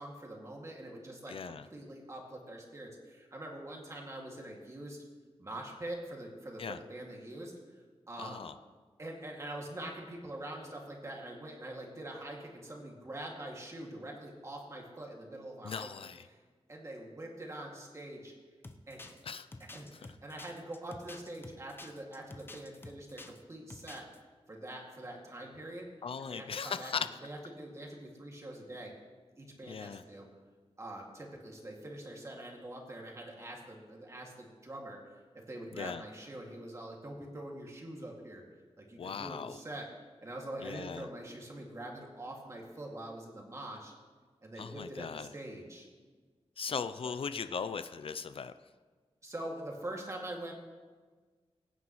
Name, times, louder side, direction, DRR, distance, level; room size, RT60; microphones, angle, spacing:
voice 1, 0.0-5.0 5.4-7.5 8.1-8.5 9.0-15.9 16.7-18.3 18.9-19.1 19.6-24.1 24.5-25.9 26.2-26.9 27.2-28.9 29.4-30.3 30.8-35.0 35.5-38.4 38.8-39.9 40.2-43.9 44.4-45.9 47.0-47.1 49.2-50.5, right 1 dB, 25° right, -1 dB, 2.2 m, -44 dB
voice 2, 1.3-1.7 6.6-6.8 8.2-8.5 15.6-16.3 19.2-19.5 19.9-20.0 26.0-27.1 29.7-30.0 35.7-36.0 39.0-39.6 40.6-41.1 44.6-45.3 46.6-48.5, left 6 dB, 55° left, 12 dB, 0.4 m, -38 dB
sound 1, 18.6-23.4 23.7-24.2, left 2 dB, 20° left, 0.7 m, -49 dB
23.0 x 9.5 x 3.1 m, 1.4 s
wide cardioid pair, 165°, 11 cm